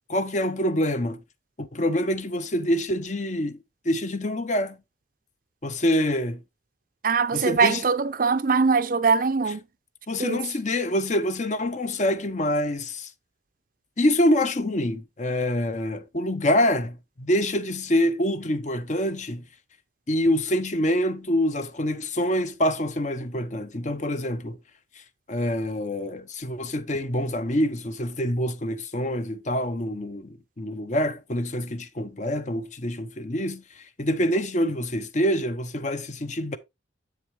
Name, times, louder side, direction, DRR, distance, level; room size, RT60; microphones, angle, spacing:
voice 1, 0.1-1.2 1.6-3.6 3.8-4.8 5.6-6.4 7.3-7.8 10.1-13.1 14.0-19.4 20.1-24.6 25.3-36.6, left 1 dB, 40° left, 0.7 m, -26 dB
voice 2, 7.0-9.6 10.2-10.4, right 5 dB, 45° right, 0.5 m, -22 dB
7.9 x 6.8 x 3.0 m
head